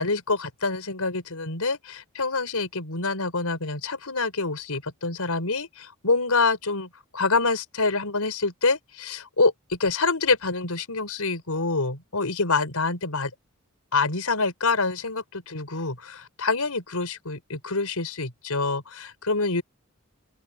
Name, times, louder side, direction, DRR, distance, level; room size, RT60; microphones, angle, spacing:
voice 1, 0.0-13.3 13.9-19.6, left 3 dB, 85° left, 4.6 m, -26 dB
open air
head